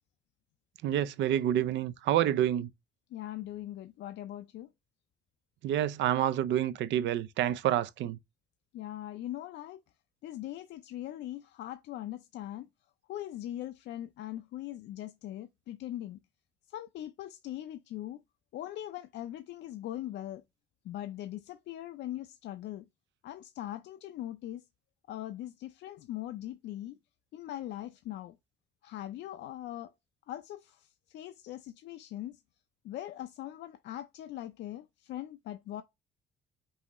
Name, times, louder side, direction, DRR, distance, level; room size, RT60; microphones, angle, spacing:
voice 1, 0.8-2.7 5.6-8.2, right 11 dB, 85° right, 0.5 m, -28 dB
voice 2, 3.1-4.7 8.7-9.8 10.2-12.7 13.1-16.2 16.7-18.2 18.5-20.4 20.8-22.9 23.2-24.6 25.1-27.0 27.3-28.4 28.8-29.9 30.3-32.4 32.8-35.8, left 13 dB, 75° left, 0.5 m, -41 dB
5.5 x 2.7 x 3.0 m
cardioid pair, 165°, 19 cm